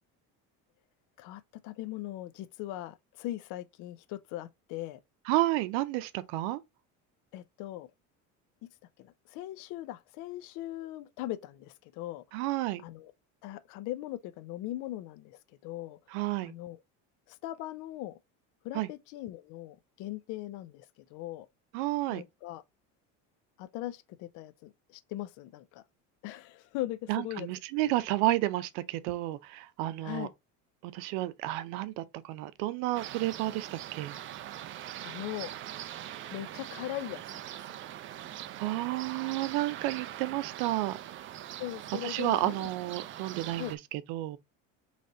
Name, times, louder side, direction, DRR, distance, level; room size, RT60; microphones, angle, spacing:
voice 1, 1.2-5.0 7.3-7.9 9.0-12.2 12.8-13.1 13.4-16.0 16.4-16.8 17.3-18.2 18.6-20.9 21.1-21.5 22.1-22.6 23.6-25.8 26.2-27.5 30.0-30.3 35.0-35.5 36.3-37.8 41.6-42.7 43.6-43.7, left 15 dB, 65° left, 0.6 m, -40 dB
voice 2, 5.3-6.6 12.3-12.8 16.1-16.5 18.7-18.9 21.7-22.2 27.1-30.3 30.8-34.1 38.6-41.0 42.0-44.4, right 16 dB, 85° right, 0.7 m, -31 dB
sound 1, 32.9-43.8, right 12 dB, 40° right, 0.4 m, -42 dB
4.0 x 3.3 x 3.8 m
cardioid pair, 145°, 33 cm